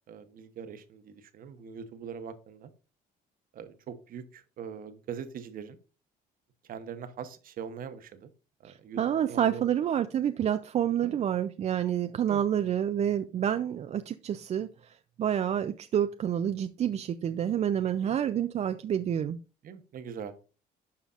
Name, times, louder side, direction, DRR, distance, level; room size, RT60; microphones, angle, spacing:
voice 1, 0.1-2.7 3.5-5.8 6.7-8.3 8.6-9.0 9.3-9.6 11.0-11.2 12.3-12.4 18.0-18.2 19.6-20.5, right 7 dB, 55° right, 10 dB, 1.0 m, -42 dB
voice 2, 8.6-19.4, right 9 dB, 40° right, 9 dB, 0.4 m, -28 dB
11.5 x 5.0 x 2.4 m, 0.35 s
cardioid pair, 110°, 17 cm